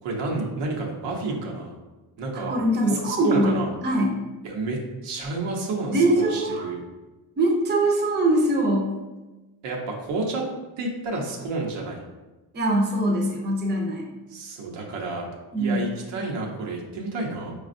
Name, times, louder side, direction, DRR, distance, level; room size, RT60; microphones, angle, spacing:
voice 1, 0.0-1.7 2.2-2.5 3.0-3.7 4.4-6.8 9.6-10.5 10.8-12.0 14.3-15.3 15.6-17.5, right 3 dB, 80° right, -1 dB, 0.9 m, -30 dB
voice 2, 2.3-3.6 3.8-4.2 5.9-6.7 7.4-8.9 12.5-14.0 15.5-15.9, right 1 dB, 25° right, 0 dB, 0.6 m, -22 dB
4.9 x 2.3 x 2.5 m, 1.1 s
cardioid pair, 125°, 42 cm